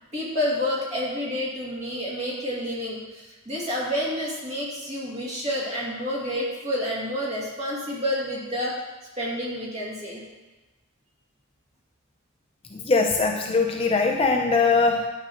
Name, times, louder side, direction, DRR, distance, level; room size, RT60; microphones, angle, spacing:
voice 1, 0.1-8.8 9.2-10.2, equal, 30° right, -6 dB, 2.5 m, -29 dB
voice 2, 12.7-15.1, left 4 dB, 25° left, 2 dB, 0.6 m, -21 dB
11.0 x 7.2 x 3.0 m, 1.1 s
head